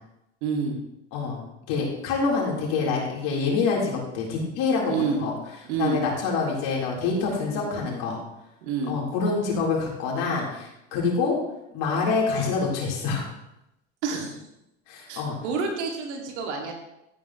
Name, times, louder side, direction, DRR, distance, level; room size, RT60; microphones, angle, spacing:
voice 1, 0.4-0.8 4.9-5.2 5.6-6.0 8.6-9.0 14.0-14.4 15.1-16.7, right 5 dB, 80° right, 1 dB, 2.5 m, -28 dB
voice 2, 1.7-5.3 5.7-8.2 8.9-11.4 11.7-13.3 14.9-15.4, left 4 dB, 65° left, -3 dB, 4.0 m, -26 dB
14.0 x 9.3 x 3.1 m, 0.86 s
supercardioid pair, 90°, 34 cm